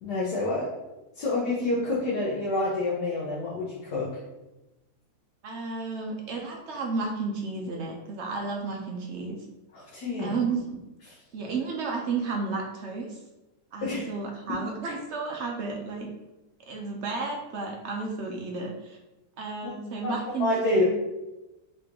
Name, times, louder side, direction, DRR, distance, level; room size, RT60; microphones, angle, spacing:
voice 1, 0.0-0.7 1.1-4.1 9.7-10.3 13.8-14.0 20.0-20.1 20.4-20.8, left 2 dB, 85° left, -6 dB, 1.5 m, -27 dB
voice 2, 5.4-9.5 10.2-10.7 11.3-13.2 13.7-16.1 16.7-19.0 19.4-20.8, right 4 dB, 65° right, 1 dB, 0.7 m, -32 dB
4.1 x 3.6 x 2.9 m, 1.0 s
omnidirectional pair, 1.7 m